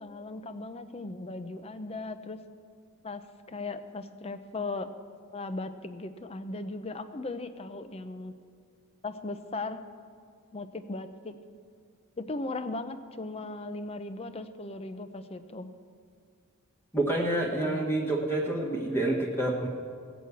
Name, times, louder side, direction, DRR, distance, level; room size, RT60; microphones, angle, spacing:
voice 1, 0.0-2.4 3.0-4.9 5.3-8.3 9.0-9.8 10.5-11.3 12.2-15.7, left 2 dB, 25° left, 10 dB, 0.6 m, -37 dB
voice 2, 16.9-19.7, right 1 dB, 10° left, -2 dB, 1.2 m, -28 dB
17.0 x 6.2 x 8.3 m, 2.2 s
head